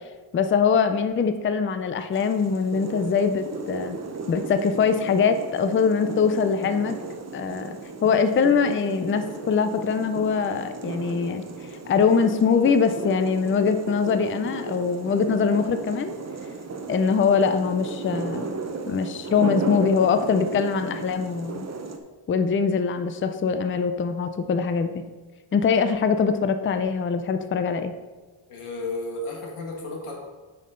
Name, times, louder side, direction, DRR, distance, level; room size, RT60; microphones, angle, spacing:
voice 1, 0.3-4.0 4.3-6.9 7.3-11.4 11.9-16.1 16.9-18.5 18.9-21.7 22.3-24.9 25.5-27.9, left 6 dB, 25° left, 9 dB, 0.4 m, -23 dB
sound 1, 2.1-22.0, right 4 dB, 35° right, 0.7 m, -35 dB
voice 2, 28.5-30.2, left 2 dB, 85° left, 0 dB, 1.9 m, -33 dB
9.4 x 5.5 x 3.7 m, 1.3 s
wide cardioid pair, 155°, 50 cm